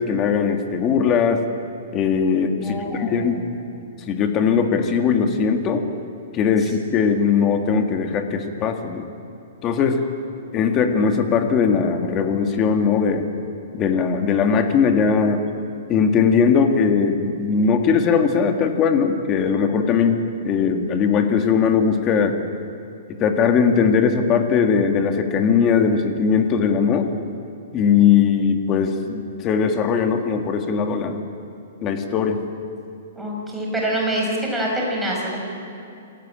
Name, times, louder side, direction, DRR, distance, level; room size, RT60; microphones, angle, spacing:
voice 1, 0.0-1.4 1.9-3.4 4.1-5.8 6.3-9.1 9.6-10.1 10.5-13.3 13.7-15.4 15.9-22.4 23.1-27.1 27.7-31.2 31.8-32.4, left 6 dB, 25° left, 5 dB, 2.0 m, -19 dB
voice 2, 2.6-3.4 6.6-6.7 33.2-35.4, right 1 dB, 5° right, -3 dB, 5.4 m, -26 dB
27.5 x 17.0 x 9.0 m, 2.7 s
hypercardioid pair, 160°, 0 cm